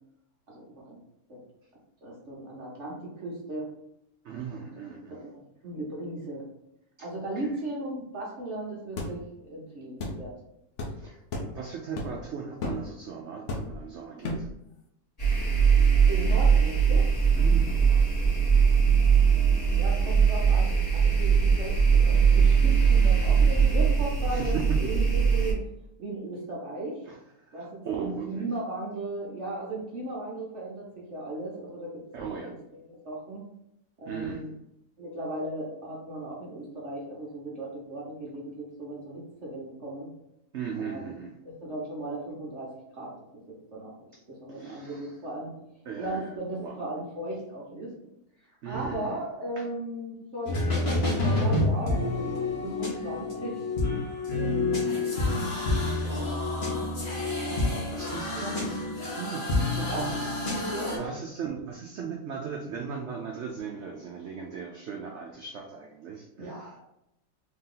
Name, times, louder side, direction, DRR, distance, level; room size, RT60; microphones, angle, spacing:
voice 1, 0.5-1.0 1.3-1.4 2.0-3.7 4.6-6.4 7.0-10.3 11.4-11.5 16.1-17.1 19.7-25.6 26.0-27.0 27.5-33.4 34.0-34.5 35.0-40.1 40.8-45.5 45.9-47.9 48.6-50.6 50.9-53.6 54.3-54.9 56.0-58.6 59.8-60.3 60.6-61.1 66.4-66.8, right 1 dB, 50° right, -4 dB, 1.1 m, -37 dB
voice 2, 4.2-5.2 7.4-7.5 11.0-11.2 11.5-14.5 17.3-18.0 24.3-24.8 27.1-27.2 27.5-28.5 32.1-32.6 34.1-34.5 40.5-41.3 44.5-45.1 45.9-46.8 48.6-49.2 57.7-58.8 59.2-60.2 60.5-66.8, right 6 dB, 75° right, 0 dB, 0.6 m, -37 dB
sound 1, 9.0-9.2 10.0-10.2 10.8-10.9 11.3-11.5 12.0-12.2 12.6-12.8 13.5-13.8 14.2-14.5, left 2 dB, 60° left, 0.8 m, -33 dB
sound 2, 15.2-25.5, right 6 dB, 25° left, 1.7 m, -21 dB
sound 3, 50.5-61.0, left 2 dB, 40° left, 1.2 m, -28 dB
3.6 x 2.9 x 3.8 m, 0.82 s
omnidirectional pair, 1.8 m